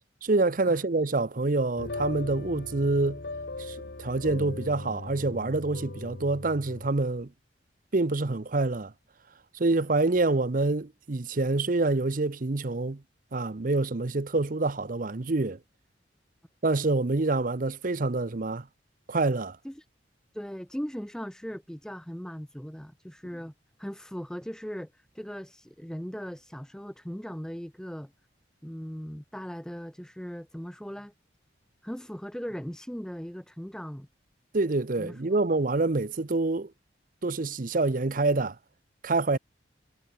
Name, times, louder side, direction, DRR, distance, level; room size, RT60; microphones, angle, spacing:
voice 1, 0.2-3.2 3.6-7.3 7.9-8.9 9.6-13.0 13.3-15.6 16.6-18.6 19.1-19.6 34.5-36.7 37.2-38.5 39.0-39.4, right 3 dB, 45° right, 0.8 m, -26 dB
sound 1, 1.8-6.9, left 2 dB, 60° left, 1.2 m, -39 dB
voice 2, 20.3-23.5 23.8-28.1 28.6-31.1 31.8-34.1 35.0-35.4, equal, 5° left, 0.8 m, -39 dB
head